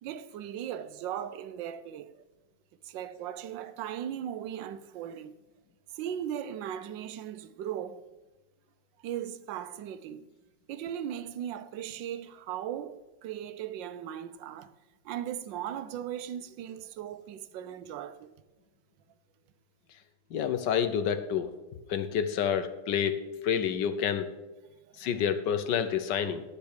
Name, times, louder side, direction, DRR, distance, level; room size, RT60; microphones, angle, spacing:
voice 1, 0.0-2.2 2.8-5.4 5.9-8.0 9.0-10.3 10.7-14.7 15.0-18.3 25.1-25.2, right 10 dB, 80° right, 1.3 m, -38 dB
voice 2, 20.3-21.5 21.9-24.3 25.0-26.4, left 8 dB, 70° left, 1.4 m, -28 dB
9.8 x 7.0 x 6.5 m
omnidirectional pair, 2.0 m